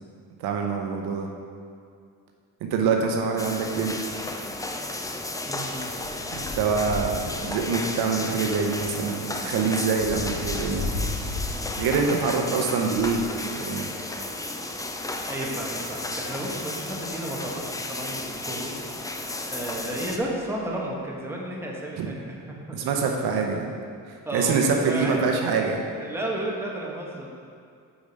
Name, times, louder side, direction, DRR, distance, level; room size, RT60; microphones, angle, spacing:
voice 1, 0.4-1.3 2.6-3.9 6.3-10.8 11.8-13.2 13.5-13.9 22.0-22.1 22.7-23.7 24.3-25.8, right 5 dB, 80° right, 2 dB, 0.8 m, -25 dB
sound 1, 3.4-20.2, left 2 dB, 10° left, 0.4 m, -33 dB
sound 2, 4.5-13.3 14.1-15.4 16.1-16.2 16.4-16.5 18.2-18.4 19.0-19.2 19.6-20.9, left 2 dB, 75° left, 1.1 m, -38 dB
voice 2, 5.5-5.9 15.3-18.7 19.1-22.8 23.3-23.4 24.2-25.5 26.0-27.3, right 1 dB, 5° right, -3 dB, 1.2 m, -33 dB
5.1 x 5.0 x 5.2 m, 2.3 s
cardioid pair, 85°, 37 cm